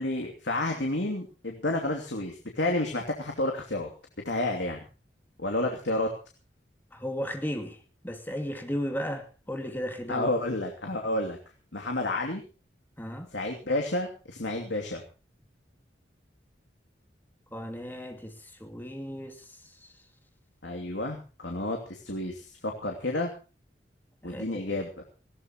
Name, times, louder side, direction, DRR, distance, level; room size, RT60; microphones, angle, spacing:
voice 1, 0.0-3.9 4.2-4.8 5.4-6.1 10.1-11.4 11.7-12.4 13.3-15.0 20.6-23.3 24.2-24.9, left 2 dB, 80° left, 2 dB, 2.8 m, -30 dB
voice 2, 6.9-7.8 8.0-10.3 13.0-13.3 17.5-19.4 24.2-24.8, equal, 10° left, 4 dB, 2.7 m, -35 dB
20.0 x 17.0 x 3.0 m, 0.35 s
head